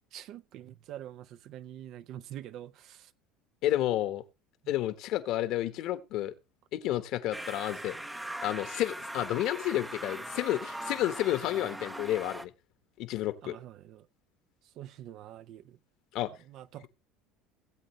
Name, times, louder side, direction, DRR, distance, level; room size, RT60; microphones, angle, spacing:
voice 1, 0.1-3.1 4.6-4.7 13.4-14.1 14.8-15.8 16.5-16.9, right 12 dB, 55° right, 0.7 m, -45 dB
voice 2, 3.6-4.2 4.7-6.3 6.7-7.9 8.4-12.5 13.0-13.6 16.1-16.3, left 14 dB, 60° left, 1.2 m, -31 dB
sound 1, 7.3-12.5, right 1 dB, 5° right, 0.7 m, -40 dB
18.0 x 8.0 x 3.2 m
supercardioid pair, 130°, 0 cm